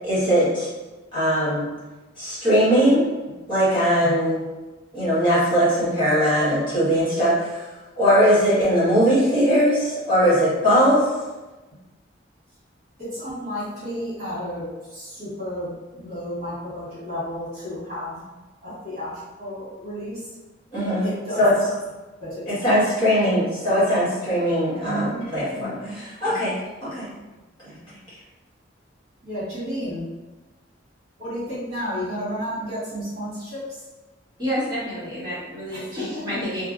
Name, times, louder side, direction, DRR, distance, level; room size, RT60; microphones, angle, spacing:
voice 1, 0.0-0.7 1.1-1.7 2.2-3.0 3.5-4.4 4.9-7.6 8.0-11.1 20.7-21.1 21.4-21.5 22.5-26.5 26.8-27.1 27.6-27.7, equal, 25° left, -12 dB, 1.3 m, -20 dB
voice 2, 13.0-18.3 18.6-20.3 21.0-21.4 22.2-22.7 23.0-23.1 24.8-26.6 27.7-27.8 29.2-30.0 31.2-33.8 35.7-36.2, equal, 55° right, -9 dB, 1.4 m, -32 dB
voice 3, 34.4-36.7, equal, 25° right, -12 dB, 1.5 m, -29 dB
2.7 x 2.6 x 2.5 m, 1.2 s
head